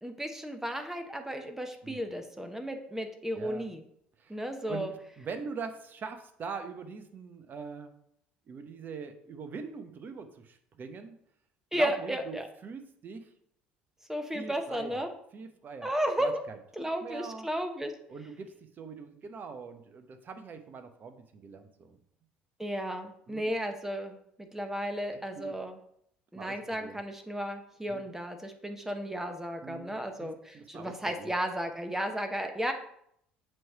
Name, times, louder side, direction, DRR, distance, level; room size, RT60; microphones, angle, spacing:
voice 1, 0.0-3.8 4.3-4.9 11.7-12.5 14.1-15.1 15.8-16.4 16.8-17.9 22.6-24.2 24.5-25.8 26.3-32.7, equal, 10° right, 5 dB, 1.0 m, -34 dB
voice 2, 3.3-3.6 4.2-4.4 4.7-7.9 8.5-11.2 11.7-12.4 12.6-13.3 14.3-15.9 16.2-17.5 18.1-22.0 23.3-23.5 25.1-25.5 26.3-27.0 27.9-28.0 29.6-31.3, right 5 dB, 40° right, 8 dB, 0.9 m, -43 dB
7.5 x 3.3 x 5.5 m, 0.71 s
hypercardioid pair, 60°, 5 cm